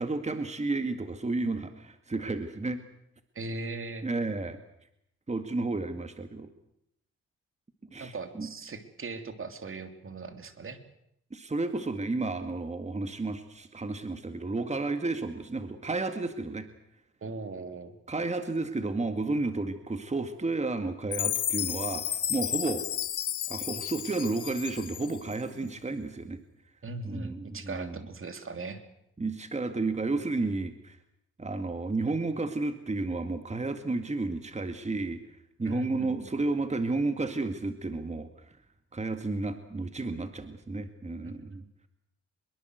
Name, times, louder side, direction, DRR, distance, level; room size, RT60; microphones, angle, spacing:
voice 1, 0.0-2.8 4.0-4.6 5.3-6.5 7.9-8.5 11.3-16.7 18.1-22.9 23.5-26.4 27.0-28.1 29.2-31.0 31.4-38.6 38.9-41.6, right 3 dB, 25° right, 9 dB, 2.0 m, -32 dB
voice 2, 3.3-4.1 8.0-10.8 17.2-17.9 26.8-28.8 35.6-36.3 41.2-41.7, right 3 dB, 45° right, 9 dB, 3.1 m, -39 dB
Chime, 21.1-25.4, left 11 dB, 90° left, 1.2 m, -32 dB
24.0 x 22.5 x 8.0 m, 0.76 s
cardioid pair, 95°, 29 cm